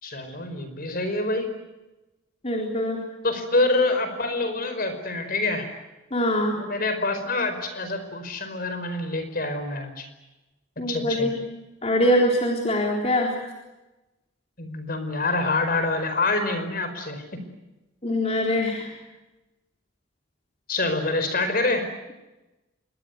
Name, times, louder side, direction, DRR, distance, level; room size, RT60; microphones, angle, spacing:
voice 1, 0.0-1.5 3.2-5.7 6.5-10.1 10.9-11.3 14.6-17.4 20.7-21.9, left 2 dB, 45° left, 9 dB, 4.9 m, -26 dB
voice 2, 2.4-3.0 6.1-6.6 10.8-11.4 11.8-13.3 18.0-18.9, left 1 dB, 30° left, 0 dB, 3.8 m, -23 dB
27.0 x 22.0 x 9.4 m, 1.0 s
head